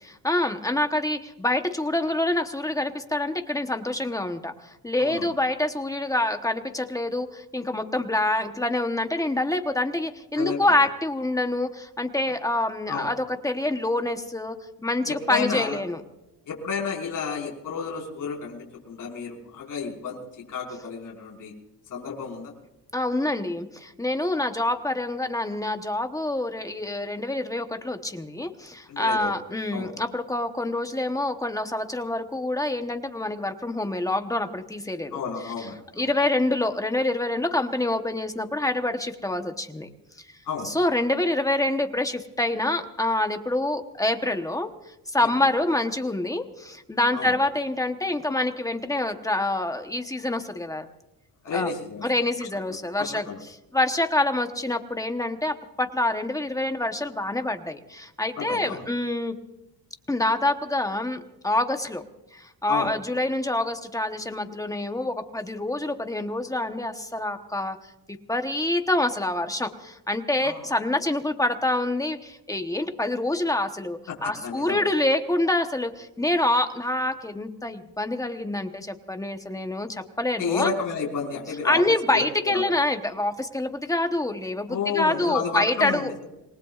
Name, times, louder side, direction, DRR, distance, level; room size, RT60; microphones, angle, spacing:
voice 1, 0.0-16.0 22.9-35.2 35.6-35.7 36.0-39.9 40.6-44.7 45.1-50.9 51.5-51.7 52.0-53.2 53.7-59.3 60.1-62.0 62.3-67.8 68.1-80.7 81.6-86.1, left 2 dB, 10° left, 6 dB, 1.0 m, -26 dB
voice 2, 5.0-5.3 10.3-10.7 12.9-13.1 15.1-15.8 16.5-20.2 20.5-21.5 21.9-22.5 28.9-29.3 29.7-29.9 35.1-36.1 40.4-40.7 45.2-45.3 47.1-47.3 51.4-52.1 53.0-53.4 58.4-58.8 62.7-62.9 70.4-70.6 74.1-74.2 74.4-74.8 80.4-81.8 82.1-82.6 84.7-86.2, left 6 dB, 50° left, -2 dB, 5.1 m, -31 dB
27.5 x 20.0 x 2.4 m, 0.95 s
cardioid pair, 175°, 39 cm